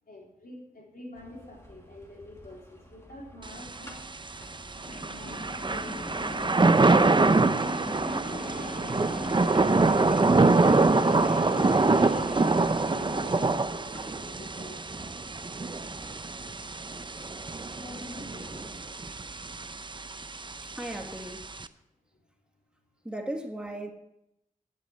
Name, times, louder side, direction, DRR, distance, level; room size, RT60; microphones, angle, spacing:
voice 1, 0.1-4.0 5.1-6.5 7.7-9.5 9.8-15.1 17.8-19.0, left 1 dB, 90° left, -2 dB, 3.2 m, -45 dB
sound 1, 1.1-18.9, equal, 20° left, 2.4 m, -52 dB
Thunder / Rain, 3.4-21.7, right 3 dB, 35° right, 0.6 m, -25 dB
sound 2, 4.8-13.6, left 1 dB, 70° left, 2.3 m, -40 dB
voice 2, 20.7-21.5 23.0-23.9, right 1 dB, 5° right, 2 dB, 1.6 m, -36 dB
9.3 x 8.4 x 7.7 m, 0.84 s
cardioid pair, 45°, 15 cm